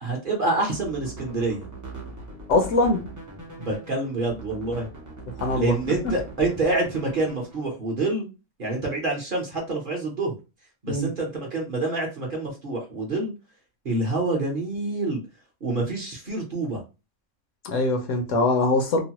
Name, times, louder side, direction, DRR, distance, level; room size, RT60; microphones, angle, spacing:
voice 1, 0.0-1.7 3.6-4.9 5.6-8.3 8.6-10.4 10.8-13.3 13.8-15.2 15.6-16.8, right 2 dB, 45° right, 0.8 m, -27 dB
sound 1, 0.6-7.7, right 1 dB, 25° right, 0.4 m, -40 dB
voice 2, 2.5-3.0 5.4-5.7 6.0-6.1 10.9-11.1 17.6-19.0, left 2 dB, 70° left, 0.9 m, -22 dB
3.0 x 2.1 x 2.8 m
omnidirectional pair, 1.4 m